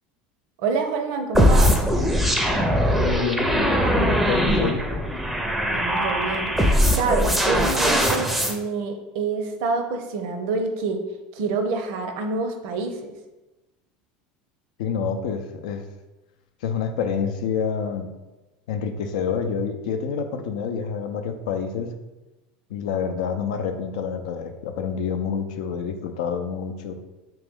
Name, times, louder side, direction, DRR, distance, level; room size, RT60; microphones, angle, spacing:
voice 1, 0.6-1.8 5.7-6.5 6.9-11.0 11.3-13.1, right 4 dB, 70° right, 5 dB, 0.6 m, -27 dB
sound 1, 1.3-8.5, equal, 5° right, 0.5 m, -21 dB
voice 2, 2.9-4.9 14.8-15.8 16.6-18.1 18.7-21.9 22.7-26.9, left 6 dB, 85° left, 7 dB, 0.4 m, -28 dB
3.4 x 3.0 x 3.6 m, 1.1 s
supercardioid pair, 125°, 4 cm